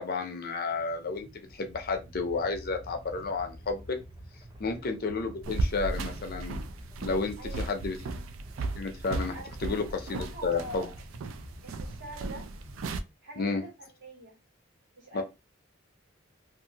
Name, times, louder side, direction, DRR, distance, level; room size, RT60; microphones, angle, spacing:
voice 1, 0.0-4.0 4.6-6.6 7.0-8.0 8.7-9.4 9.6-10.9 13.4-13.6 15.1-15.2, left 4 dB, 50° left, 0.5 m, -31 dB
sound 1, 0.7-13.0, equal, 20° right, 0.5 m, -49 dB
sound 2, 5.4-13.0, right 2 dB, 85° right, 0.4 m, -36 dB
voice 2, 7.4-7.7 9.3-9.5 10.1-10.9 11.6-12.5 13.2-14.4 14.9-15.2, right 2 dB, 60° right, 1.4 m, -44 dB
2.6 x 2.4 x 2.8 m
head